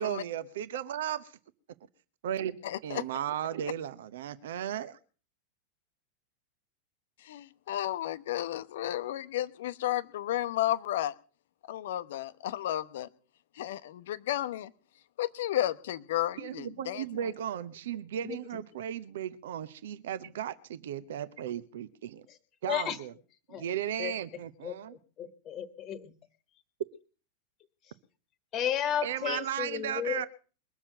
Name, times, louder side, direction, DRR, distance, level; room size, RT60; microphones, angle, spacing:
voice 1, 0.0-1.4 2.2-2.6 2.8-5.0 16.4-22.2 22.6-23.1 23.5-25.0 29.0-30.3, right 10 dB, 60° right, 0.8 m, -35 dB
voice 2, 2.6-3.0 7.2-11.1 11.7-13.1 13.6-14.7 15.2-17.0, left 13 dB, 55° left, 0.8 m, -32 dB
voice 3, 22.7-23.0 23.5-23.6 24.0-24.1 24.6-24.8 25.2-26.2 27.8-27.9 28.5-30.3, left 10 dB, 30° left, 1.3 m, -33 dB
22.0 x 7.3 x 7.9 m
figure-of-eight pair, 90°, 0 cm